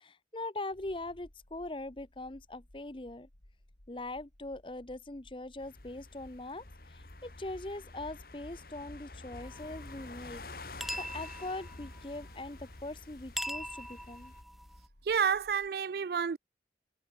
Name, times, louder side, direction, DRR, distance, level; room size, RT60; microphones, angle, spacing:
voice 1, 0.0-3.3 3.9-10.7 11.0-14.3, left 2 dB, 30° left, 0.9 m, -42 dB
sound 1, 0.7-15.7, left 1 dB, 85° left, 3.2 m, -61 dB
sound 2, 5.6-14.4, left 2 dB, 55° left, 1.7 m, -49 dB
sound 3, 9.4-14.9, equal, ahead, 1.5 m, -43 dB
voice 2, 15.1-16.4, right 7 dB, 55° right, 0.4 m, -29 dB
head